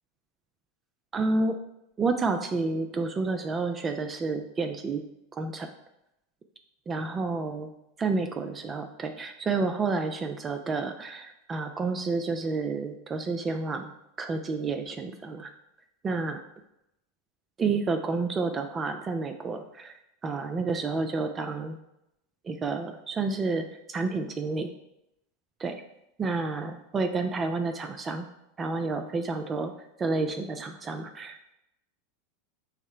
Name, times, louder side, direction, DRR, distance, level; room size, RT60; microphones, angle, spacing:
voice 1, 1.1-1.5 2.0-5.0 5.4-5.7 6.9-7.7 8.0-13.9 14.2-15.5 16.0-16.4 17.6-19.9 20.2-21.8 22.4-24.7 25.6-25.8 26.2-28.2 28.6-29.7 30.0-31.5, right 3 dB, 25° right, 7 dB, 0.4 m, -30 dB
5.7 x 2.1 x 4.4 m, 0.84 s
figure-of-eight pair, 85°, 0 cm